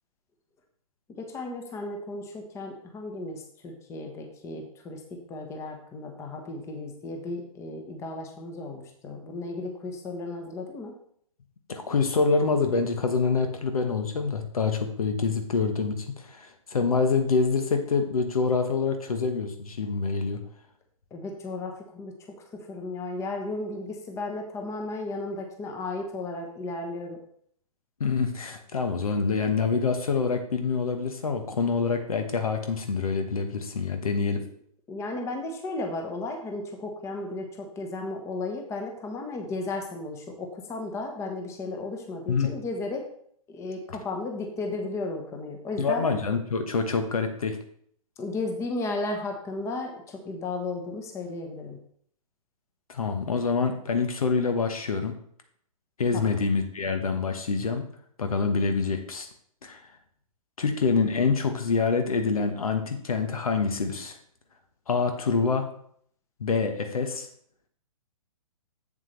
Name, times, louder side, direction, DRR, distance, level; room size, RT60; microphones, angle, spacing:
voice 1, 1.2-10.9 21.1-22.1 22.7-27.2 34.9-43.0 43.5-46.2 48.2-51.8 56.1-56.3, left 2 dB, 15° left, 3 dB, 1.1 m, -34 dB
voice 2, 11.7-20.4 28.0-34.4 42.3-42.5 45.8-47.6 52.9-55.2 56.0-57.9 58.2-59.3 59.6-59.8 60.6-64.2 64.9-65.7 66.4-67.3, left 4 dB, 75° left, 6 dB, 1.3 m, -26 dB
7.6 x 7.3 x 3.3 m, 0.65 s
hypercardioid pair, 130°, 19 cm